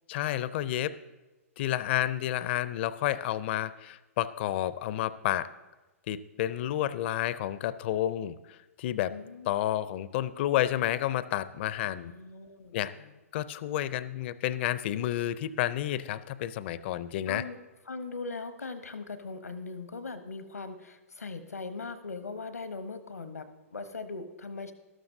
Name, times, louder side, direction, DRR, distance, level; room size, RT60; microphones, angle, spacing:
voice 1, 0.1-1.0 1.6-5.5 6.1-9.1 9.5-12.1 12.7-12.9 13.3-17.4, left 13 dB, 50° left, 16 dB, 0.4 m, -30 dB
voice 2, 9.1-9.5 11.8-13.1 17.3-17.6 17.9-24.7, left 3 dB, 90° left, 11 dB, 0.9 m, -40 dB
12.5 x 12.5 x 2.7 m, 1.1 s
hypercardioid pair, 120°, 8 cm